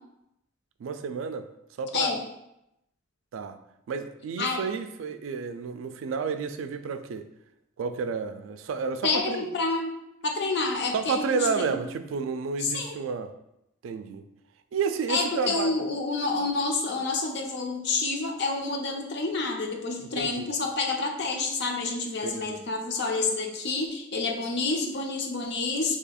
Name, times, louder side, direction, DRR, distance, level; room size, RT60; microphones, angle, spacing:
voice 1, 0.8-1.5 1.8-2.1 3.3-3.6 3.9-7.3 7.8-9.5 10.9-13.3 13.8-14.2 14.7-15.8 20.2-20.5 22.2-22.6, right 5 dB, 80° right, 10 dB, 0.3 m, -31 dB
voice 2, 9.0-9.9 10.2-11.8 12.6-12.9 15.1-26.0, left 3 dB, 55° left, 3 dB, 0.5 m, -28 dB
2.7 x 2.4 x 4.1 m, 0.84 s
head